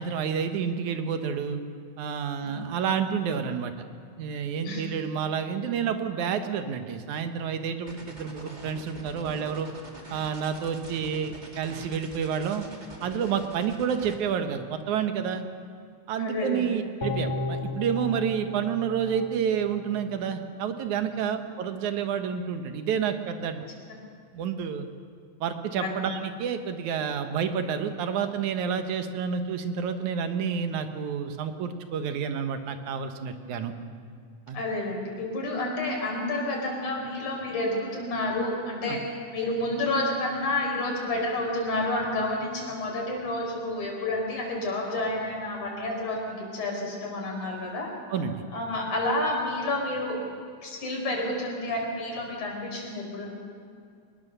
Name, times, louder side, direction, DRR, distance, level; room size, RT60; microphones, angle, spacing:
voice 1, 0.0-1.6 2.0-3.7 4.2-9.7 10.1-12.6 13.0-15.4 16.1-23.7 24.3-24.9 25.4-33.7 34.5-34.6 38.9-39.0 48.1-48.4, right 7 dB, 75° right, 8 dB, 2.6 m, -29 dB
sound 1, 7.9-14.2, right 1 dB, 15° right, 2.0 m, -45 dB
voice 2, 16.2-16.6 25.8-26.0 34.5-39.0 39.3-47.9 48.5-50.2 50.6-53.3, left 2 dB, 80° left, 0 dB, 5.9 m, -29 dB
sound 2, 17.0-20.3 20.7-20.8, left 3 dB, 45° left, 2.7 m, -34 dB
24.0 x 20.5 x 6.8 m, 2.3 s
omnidirectional pair, 3.4 m